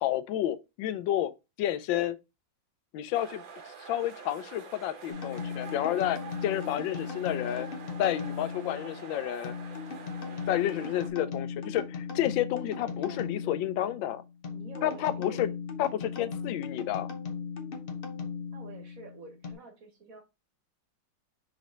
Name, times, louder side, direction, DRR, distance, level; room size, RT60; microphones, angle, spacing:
voice 1, 0.0-1.3 1.6-2.2 2.9-3.4 3.8-7.7 8.0-9.5 10.5-14.2 14.8-15.5 15.8-17.1, left 12 dB, 85° left, 1.3 m, -30 dB
sound 1, 3.1-11.1, right 6 dB, 85° right, 1.9 m, -46 dB
sound 2, 5.1-19.5, left 5 dB, 40° left, 0.9 m, -38 dB
voice 2, 12.8-13.6 14.5-15.6 16.1-16.7 18.5-20.2, right 3 dB, 50° right, 1.7 m, -49 dB
6.0 x 4.1 x 3.8 m
omnidirectional pair, 2.0 m